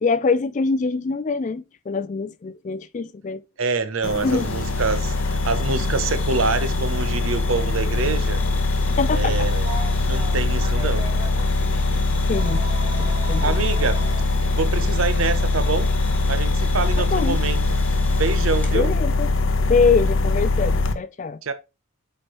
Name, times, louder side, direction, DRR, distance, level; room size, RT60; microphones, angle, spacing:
voice 1, 0.0-3.4 4.2-4.5 9.0-9.3 12.3-12.6 13.0-13.6 17.0-17.4 18.7-19.3 19.7-21.4, left 4 dB, 35° left, 0.3 m, -23 dB
voice 2, 3.6-8.4 9.1-9.7 10.0-11.1 13.4-14.1 14.5-15.9 16.3-17.6 18.1-18.9 21.4-21.5, right 4 dB, 70° right, 0.8 m, -26 dB
sound 1, 4.0-20.9, left 2 dB, 65° left, 0.7 m, -22 dB
sound 2, 4.3-18.8, left 3 dB, 10° left, 1.1 m, -41 dB
Telephone, 9.6-11.5 12.3-14.2 15.6-15.7 17.2-17.4, equal, 20° right, 0.9 m, -37 dB
7.8 x 4.4 x 3.0 m
head